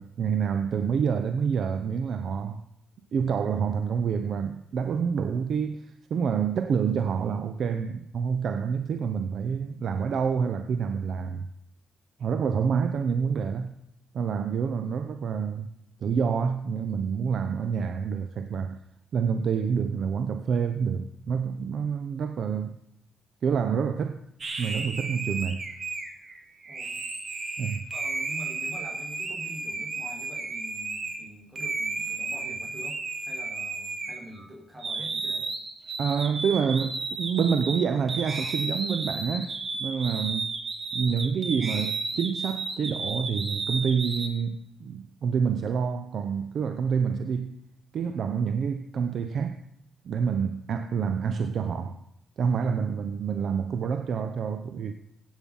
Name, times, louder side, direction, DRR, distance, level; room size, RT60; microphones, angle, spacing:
voice 1, 0.0-2.6 3.1-11.5 12.2-13.7 14.1-15.7 16.0-18.8 19.1-22.7 23.4-24.2 24.6-25.6 27.6-27.9 36.0-40.5 40.9-47.6 47.9-49.6 50.0-52.0 52.4-54.9, right 6 dB, 70° right, 0.8 m, -27 dB
sound 1, 24.4-31.2 31.6-34.5 34.8-44.3, right 3 dB, 45° right, 2.6 m, -33 dB
voice 2, 26.6-27.0 27.9-33.0 33.2-35.5, right 1 dB, 25° right, 4.8 m, -45 dB
16.5 x 9.2 x 5.6 m
supercardioid pair, 60°, 0 cm